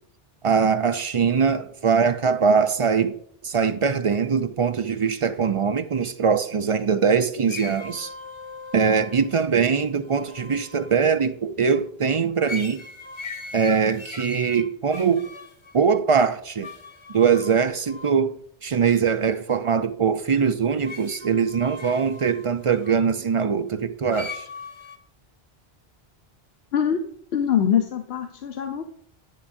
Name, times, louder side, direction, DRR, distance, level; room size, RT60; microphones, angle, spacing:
voice 1, 0.4-3.1 3.4-8.1 8.7-12.8 13.5-15.3 15.7-16.7 17.1-18.4 18.6-24.5, right 6 dB, 45° right, 0.4 m, -22 dB
sound 1, 7.5-11.1 12.5-15.8 16.6-18.1 20.8-22.9 24.1-25.0, left 3 dB, 30° left, 0.8 m, -39 dB
voice 2, 27.3-28.8, left 8 dB, 80° left, 1.0 m, -23 dB
10.5 x 10.0 x 2.6 m
omnidirectional pair, 1.0 m